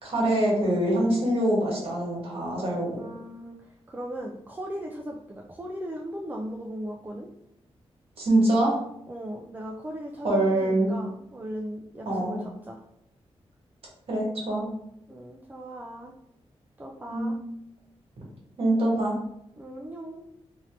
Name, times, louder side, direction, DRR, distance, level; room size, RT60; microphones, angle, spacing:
voice 1, 0.0-3.0 8.2-8.8 10.2-10.9 12.0-12.4 14.1-14.7 17.0-17.4 18.6-19.1, right 1 dB, 60° right, -4 dB, 1.3 m, -24 dB
voice 2, 3.0-3.6 3.9-7.3 9.1-12.8 15.1-16.1 16.8-17.4 19.6-20.2, equal, 15° right, 0 dB, 0.3 m, -38 dB
2.8 x 2.6 x 3.1 m, 0.79 s
wide cardioid pair, 105°, 11 cm